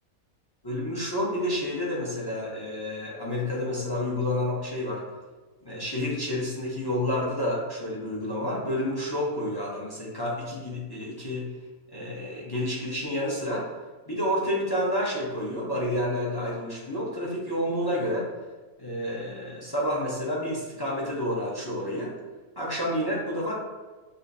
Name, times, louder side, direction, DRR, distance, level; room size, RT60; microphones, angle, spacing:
voice 1, 0.6-5.0 5.6-11.5 11.9-13.7 14.1-18.3 18.8-22.1 22.6-23.5, left 1 dB, 20° left, -4 dB, 0.6 m, -29 dB
6.6 x 2.8 x 2.7 m, 1.3 s
omnidirectional pair, 1.6 m